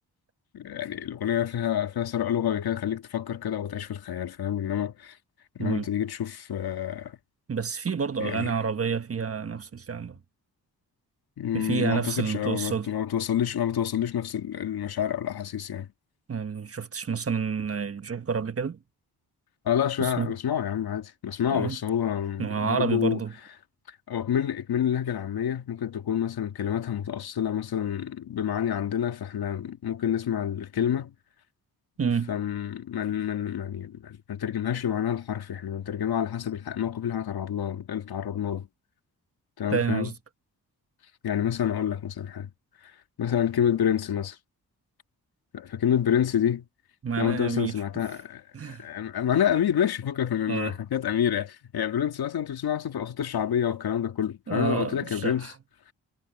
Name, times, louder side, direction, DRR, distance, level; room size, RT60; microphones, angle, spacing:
voice 1, 0.5-5.2 5.6-7.2 8.2-8.5 11.4-15.9 19.7-23.2 24.1-31.1 32.3-38.7 39.6-40.1 41.2-42.5 42.8-42.9 43.2-44.4 45.5-46.7 47.2-55.5, left 9 dB, 80° left, 2.1 m, -28 dB
voice 2, 5.6-5.9 7.5-10.2 11.5-12.9 16.3-18.8 20.0-20.3 21.5-21.8 22.4-23.3 32.0-32.3 39.7-40.1 47.0-47.8 48.5-48.8 50.5-50.7 54.5-55.5, right 6 dB, 40° right, 1.3 m, -29 dB
cardioid pair, 95°, 37 cm